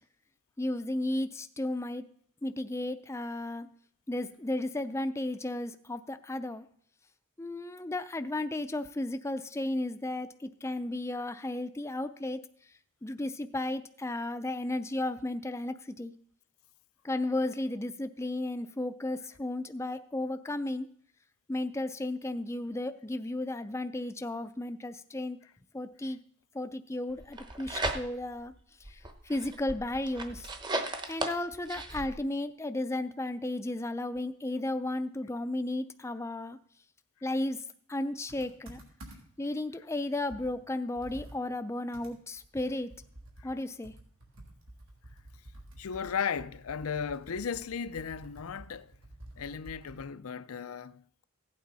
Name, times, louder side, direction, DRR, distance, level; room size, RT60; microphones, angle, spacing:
voice 1, 0.6-2.1 2.4-3.7 4.1-6.7 7.4-12.4 13.0-16.1 17.0-20.9 21.5-25.4 25.7-26.2 26.5-28.5 28.8-30.5 31.1-36.6 37.2-37.6 37.9-38.8 39.4-42.9 43.4-43.9, left 1 dB, 15° left, 0.4 m, -34 dB
Tearing Book, 27.2-28.4 28.8-32.1, right 2 dB, 20° right, 0.9 m, -36 dB
Computer keyboard, 38.3-39.5 39.9-40.0 40.3-50.2, right 1 dB, 70° right, 3.1 m, -51 dB
voice 2, 45.8-48.9 49.4-51.2, left 6 dB, 90° left, 0.5 m, -36 dB
15.5 x 8.7 x 4.1 m
head